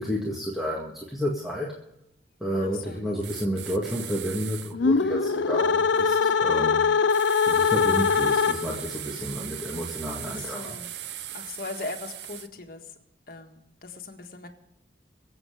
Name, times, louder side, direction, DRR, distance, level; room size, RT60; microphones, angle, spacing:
voice 1, 0.0-1.8 2.4-6.8 7.5-10.8, equal, ahead, -4 dB, 1.8 m, -31 dB
voice 2, 2.6-3.0 6.0-6.3 10.2-10.9 11.3-13.0 13.3-14.5, left 3 dB, 50° left, 4 dB, 1.8 m, -39 dB
sound 1, 3.2-4.7 7.1-12.5, right 12 dB, 70° right, 0.7 m, -39 dB
sound 2, 4.7-8.9, left 5 dB, 85° left, 0.5 m, -22 dB
23.5 x 8.0 x 5.1 m, 0.80 s
head